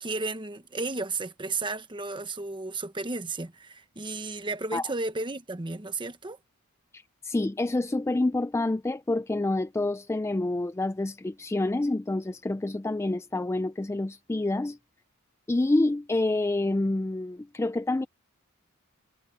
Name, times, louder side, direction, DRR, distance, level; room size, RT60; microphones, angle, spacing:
voice 1, 0.0-6.4, right 3 dB, 20° right, 1.1 m, -33 dB
voice 2, 7.2-14.8 15.5-18.1, left 2 dB, 10° left, 0.3 m, -27 dB
head